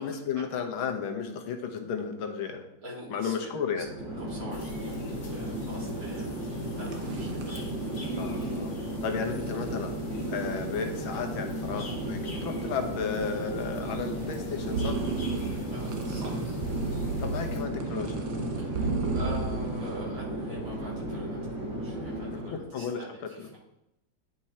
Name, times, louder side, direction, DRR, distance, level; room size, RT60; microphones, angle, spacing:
voice 1, 0.0-2.7 3.1-3.9 8.1-8.8 9.0-10.0 10.3-15.0 17.2-18.2 22.5-23.5, left 6 dB, 80° left, 5 dB, 1.8 m, -33 dB
voice 2, 2.8-3.5 3.8-3.9 4.2-6.4 6.7-7.4 10.8-11.0 15.7-16.5 18.6-23.6, right 1 dB, 55° right, -6 dB, 3.9 m, -44 dB
Chatter / Fixed-wing aircraft airplane, 3.7-22.6, equal, 35° right, 2.8 m, -35 dB
sound 1, 4.5-17.6, left 3 dB, 45° left, 1.6 m, -46 dB
sound 2, 6.6-20.0, right 4 dB, 70° right, 1.7 m, -35 dB
10.0 x 5.3 x 4.3 m, 0.86 s
omnidirectional pair, 2.2 m